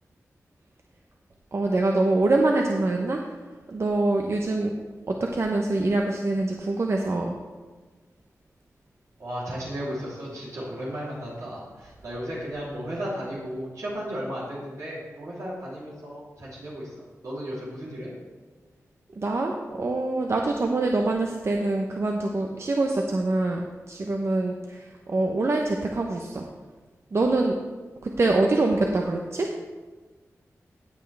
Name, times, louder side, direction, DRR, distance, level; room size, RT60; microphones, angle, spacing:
voice 1, 1.5-3.2 3.7-4.7 5.1-7.4 19.2-26.5 27.1-27.6 28.0-29.5, right 2 dB, 55° right, 1 dB, 0.9 m, -25 dB
voice 2, 9.2-18.1, equal, 80° right, -7 dB, 3.3 m, -35 dB
16.0 x 8.0 x 3.4 m, 1.4 s
wide cardioid pair, 70°, 6 cm